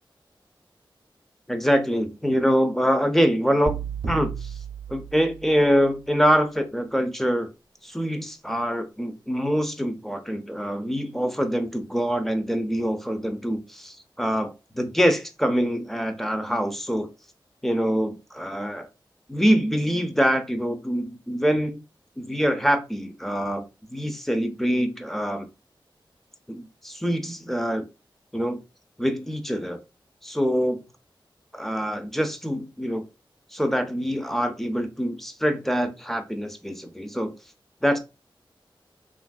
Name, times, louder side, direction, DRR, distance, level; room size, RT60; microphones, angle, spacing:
voice 1, 1.5-3.7 4.1-4.6 4.9-7.5 7.8-17.1 17.6-18.9 19.3-21.8 22.2-25.5 26.5-27.9 28.3-28.6 29.0-29.8 30.2-30.8 31.5-33.1 33.5-37.3 37.8-38.0, equal, 5° left, 0.5 m, -25 dB
sound 1, 3.7-5.8, right 6 dB, 75° right, 0.4 m, -33 dB
3.0 x 2.5 x 2.3 m
wide cardioid pair, 65°, 9 cm